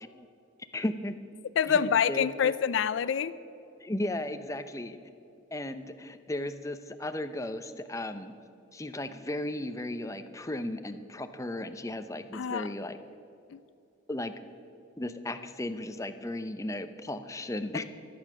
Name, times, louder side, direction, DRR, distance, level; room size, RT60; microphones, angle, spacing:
voice 1, 0.7-1.1 1.7-2.5 3.8-5.0 5.5-8.3 8.7-13.0 14.1-14.3 15.0-17.8, left 1 dB, 15° left, 9 dB, 0.6 m, -35 dB
voice 2, 1.6-3.3 12.3-12.7 17.7-17.8, left 7 dB, 70° left, 15 dB, 0.4 m, -26 dB
23.5 x 8.8 x 6.2 m, 2.6 s
head